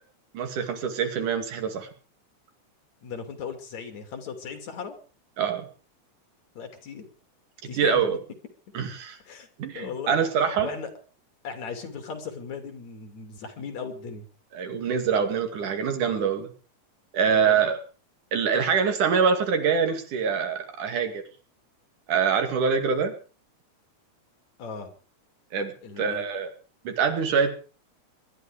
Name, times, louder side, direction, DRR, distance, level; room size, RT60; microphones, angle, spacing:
voice 1, 0.3-1.9 5.4-5.7 7.7-8.2 8.7-9.2 9.6-10.7 14.5-16.5 17.1-17.8 18.3-21.2 22.1-23.1 25.5-26.5 26.9-27.6, right 6 dB, 85° right, 6 dB, 3.9 m, -25 dB
voice 2, 3.0-5.0 6.6-7.1 7.6-8.0 9.3-9.5 9.7-10.3 10.6-10.9 11.4-14.3 17.3-17.7 24.6-24.9 25.8-26.3, left 6 dB, 65° left, 7 dB, 3.9 m, -37 dB
23.5 x 11.5 x 5.0 m, 0.37 s
omnidirectional pair, 3.5 m